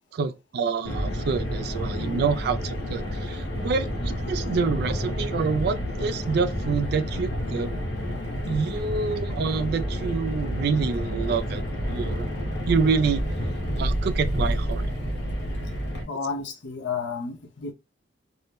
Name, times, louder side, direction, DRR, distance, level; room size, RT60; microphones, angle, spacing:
voice 1, 0.1-7.7 8.5-11.6 11.9-12.3 12.7-13.2 13.8-14.8, right 5 dB, 60° right, 0.3 m, -27 dB
Car, 0.8-16.0, equal, 65° left, 1.0 m, -29 dB
voice 2, 2.0-2.4 16.1-17.7, left 5 dB, 80° left, 0.6 m, -32 dB
2.6 x 2.1 x 3.2 m
head